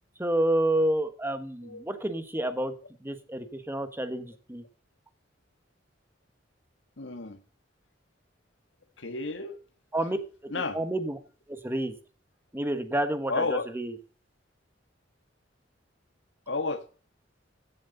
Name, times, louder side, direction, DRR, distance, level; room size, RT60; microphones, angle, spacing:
voice 1, 0.2-2.7 3.0-4.6 9.9-10.2 10.5-11.2 11.5-11.9 12.5-14.0, right 1 dB, 15° right, 1.4 m, -29 dB
voice 2, 7.0-7.4 9.0-9.6 10.5-10.8 13.3-13.7 16.5-16.8, left 3 dB, 80° left, 1.5 m, -31 dB
15.5 x 7.5 x 4.1 m
head